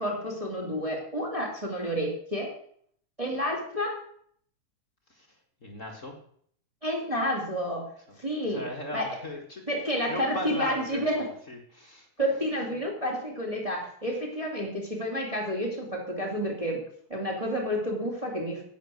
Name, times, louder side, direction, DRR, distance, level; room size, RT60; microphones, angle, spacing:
voice 1, 0.0-2.5 3.2-3.9 6.8-7.8 8.2-8.6 8.9-9.1 9.7-11.2 12.2-16.8 17.1-18.6, equal, 10° right, -1 dB, 2.8 m, -30 dB
voice 2, 5.6-6.2 8.4-9.6 10.1-11.0 11.5-12.1, left 1 dB, 35° left, 1 dB, 1.4 m, -37 dB
11.0 x 8.6 x 7.9 m, 0.64 s
omnidirectional pair, 3.7 m